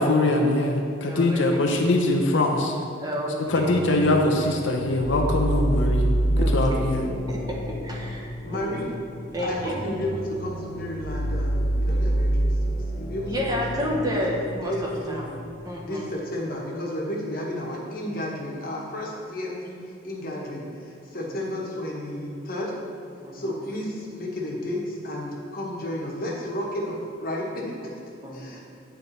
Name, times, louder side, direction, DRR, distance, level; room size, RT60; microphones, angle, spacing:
voice 1, 0.0-2.7 3.5-6.1 6.4-7.1, left 2 dB, 70° left, 2 dB, 0.5 m, -22 dB
voice 2, 1.1-1.6 3.0-3.4 6.3-6.5 7.3-7.6 7.8-8.8 9.3-9.7 13.3-14.7 15.1-15.3 15.7-16.1 21.1-21.5 23.2-23.4 28.2-28.6, equal, 20° right, -2 dB, 0.7 m, -30 dB
sound 1, 3.5-15.5, right 1 dB, 85° left, 1.3 m, -28 dB
voice 3, 8.4-9.0 9.4-14.3 14.6-15.2 15.8-22.7 23.3-27.9 28.3-28.6, left 1 dB, 50° left, -2 dB, 1.1 m, -32 dB
8.9 x 3.4 x 4.0 m, 2.4 s
head